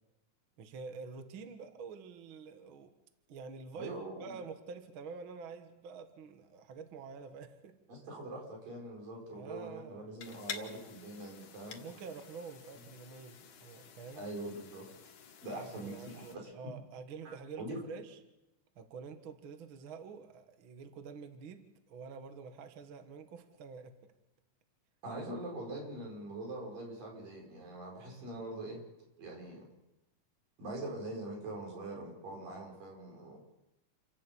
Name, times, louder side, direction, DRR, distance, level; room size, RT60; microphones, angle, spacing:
voice 1, 0.6-2.9 3.3-3.9 4.2-7.8 9.3-10.1 11.8-14.3 15.5-18.2 18.8-24.1, right 5 dB, 50° right, 7 dB, 1.8 m, -47 dB
voice 2, 3.7-4.4 7.9-11.8 14.1-14.9 15.4-16.5 17.3-17.8 25.0-28.8 29.2-29.6 30.6-33.4, right 1 dB, 85° right, -1 dB, 7.2 m, -43 dB
sound 1, 10.2-16.4, left 7 dB, 60° left, 2.8 m, -50 dB
29.0 x 11.5 x 8.4 m, 0.93 s
omnidirectional pair, 3.8 m